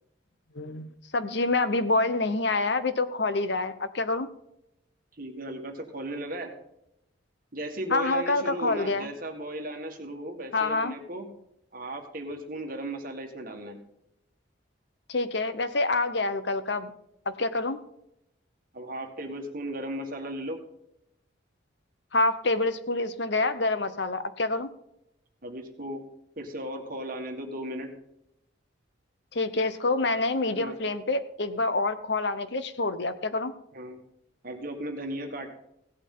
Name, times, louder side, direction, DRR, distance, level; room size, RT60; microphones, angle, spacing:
voice 1, 0.5-0.9 1.1-4.3 7.9-9.1 10.5-10.9 15.1-16.9 17.3-17.8 22.1-24.7 29.3-33.5, left 2 dB, 60° left, 12 dB, 0.9 m, -27 dB
voice 2, 5.2-6.5 7.5-11.3 11.7-13.8 18.7-20.6 25.4-26.0 26.4-27.9 30.5-30.8 33.7-34.0 34.4-35.5, right 1 dB, 45° right, 4 dB, 1.8 m, -36 dB
16.5 x 8.4 x 3.9 m, 0.81 s
head